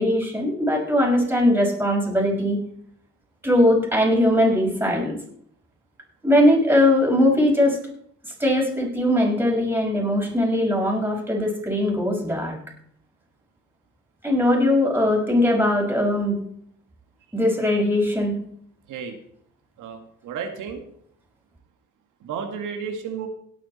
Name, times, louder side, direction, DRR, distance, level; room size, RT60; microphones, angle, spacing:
voice 1, 0.0-2.6 3.4-5.2 6.2-7.8 8.4-12.6 14.2-16.4 17.3-18.4, left 1 dB, 5° right, -1 dB, 5.8 m, -20 dB
voice 2, 19.8-20.8 22.2-23.3, right 6 dB, 85° right, 4 dB, 2.1 m, -32 dB
17.5 x 9.3 x 4.3 m, 0.65 s
cardioid pair, 90°, 30 cm